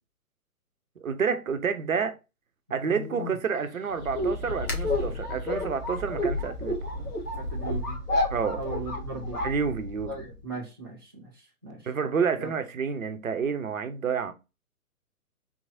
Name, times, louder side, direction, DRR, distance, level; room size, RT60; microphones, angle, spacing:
voice 1, 1.0-2.2 2.7-6.8 8.3-8.6 9.4-10.1 11.8-14.3, right 6 dB, 60° right, 0.8 m, -29 dB
sound 1, 2.7-7.9, left 2 dB, 70° left, 1.6 m, -47 dB
voice 2, 2.7-3.3 7.4-8.0 8.5-9.4 10.1-11.9 12.4-12.5, right 3 dB, 15° right, 0.4 m, -38 dB
sound 2, 4.0-10.2, left 1 dB, 90° left, 1.4 m, -30 dB
3.8 x 3.1 x 2.5 m
figure-of-eight pair, 125°, 45 cm